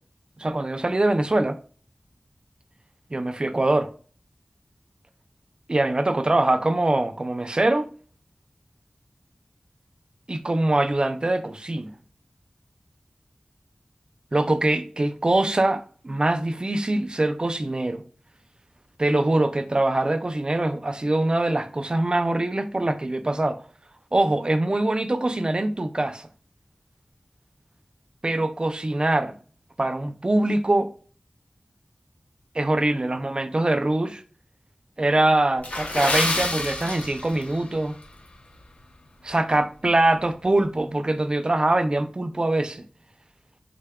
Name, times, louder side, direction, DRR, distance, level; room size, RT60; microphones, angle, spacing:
voice 1, 0.4-1.6 3.1-3.9 5.7-7.9 10.3-11.9 14.3-18.0 19.0-23.6 24.1-26.3 28.2-29.3 29.8-30.9 32.5-34.2 35.0-38.0 39.2-42.8, right 2 dB, 40° right, 0.4 m, -23 dB
Water / Splash splatter, 35.6-37.5 37.8-38.0 38.6-38.8 39.3-39.4, left 2 dB, 90° left, 0.7 m, -28 dB
sound 1, 36.1-38.4, left 2 dB, 50° left, 0.4 m, -35 dB
3.6 x 2.2 x 3.5 m
wide cardioid pair, 60°, 2 cm